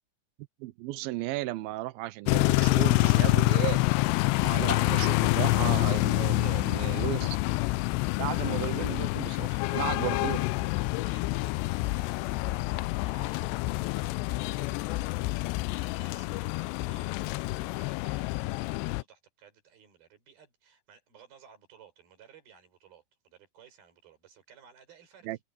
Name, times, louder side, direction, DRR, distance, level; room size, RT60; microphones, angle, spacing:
voice 1, 0.6-3.8 4.4-7.4 8.2-10.5 25.2-25.4, right 17 dB, 80° right, 2.1 m, -35 dB
sound 1, 2.3-19.0, left 22 dB, 85° left, 2.6 m, -27 dB
voice 2, 6.4-7.3 10.8-12.4 12.7-13.5 14.0-15.1 15.5-25.3, right 7 dB, 55° right, 6.8 m, -57 dB
omnidirectional pair, 5.1 m